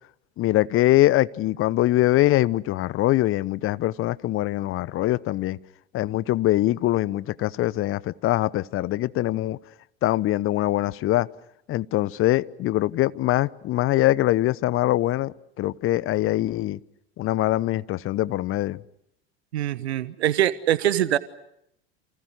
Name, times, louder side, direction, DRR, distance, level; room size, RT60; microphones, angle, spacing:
voice 1, 0.4-5.6 5.9-9.6 10.0-11.3 11.7-16.8 17.2-18.8, left 16 dB, 40° left, 20 dB, 1.0 m, -23 dB
voice 2, 19.5-21.2, right 12 dB, 75° right, 16 dB, 1.2 m, -23 dB
29.5 x 28.5 x 6.5 m, 0.76 s
hypercardioid pair, 80°, 32 cm